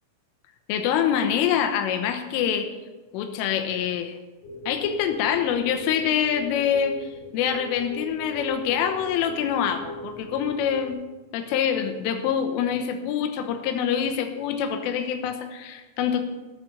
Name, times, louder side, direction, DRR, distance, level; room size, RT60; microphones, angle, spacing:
voice 1, 0.7-2.7 3.1-4.2 4.7-11.0 11.3-16.2, left 8 dB, 90° left, 7 dB, 3.5 m, -25 dB
sound 1, 4.4-10.9, equal, 60° left, 5.8 m, -38 dB
14.0 x 8.4 x 6.7 m, 1.2 s
omnidirectional pair, 5.6 m